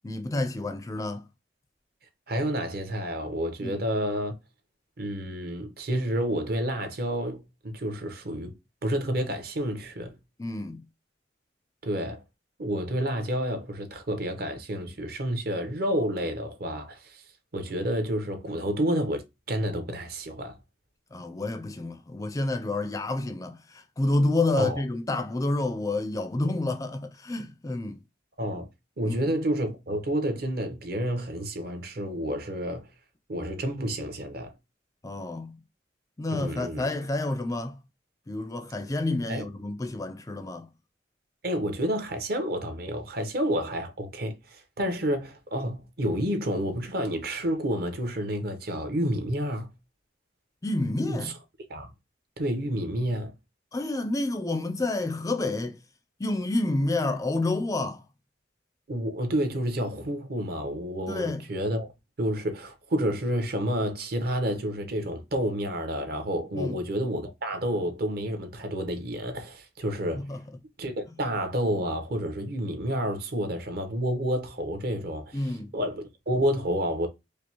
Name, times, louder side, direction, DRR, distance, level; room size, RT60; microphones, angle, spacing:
voice 1, 0.0-1.2 3.6-3.8 10.4-10.8 21.1-28.0 29.0-29.1 35.0-35.6 36.2-37.7 38.3-40.7 50.6-51.3 53.7-55.8 56.2-58.0 61.1-61.4 66.6-66.8 70.3-70.4 75.3-75.7, left 2 dB, 20° left, 0.4 m, -29 dB
voice 2, 2.3-4.3 5.0-8.5 8.8-10.2 11.8-12.2 12.6-17.2 17.5-20.6 24.6-24.8 28.4-28.7 29.0-32.9 33.3-34.5 36.3-36.9 39.3-39.4 41.4-49.7 51.1-51.3 51.7-51.9 52.4-53.3 58.9-61.9 62.2-70.2 70.8-77.1, equal, 55° right, 0.9 m, -29 dB
4.9 x 2.0 x 2.9 m
head